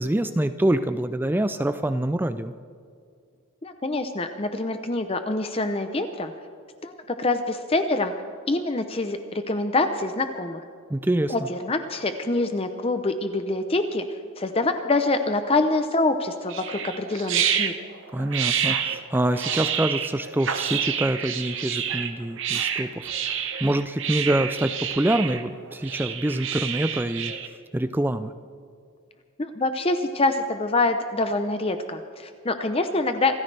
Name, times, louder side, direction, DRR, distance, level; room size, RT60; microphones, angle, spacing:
voice 1, 0.0-2.5 10.9-11.3 18.1-27.3 27.7-28.3, right 1 dB, 10° right, 11 dB, 0.3 m, -25 dB
voice 2, 3.6-6.3 6.8-8.1 8.5-10.6 11.3-14.0 14.4-17.7 29.4-33.4, left 2 dB, 25° left, 8 dB, 0.6 m, -25 dB
sound 1, 16.5-27.5, right 8 dB, 55° right, 1.0 m, -28 dB
27.5 x 14.0 x 3.3 m, 2.2 s
head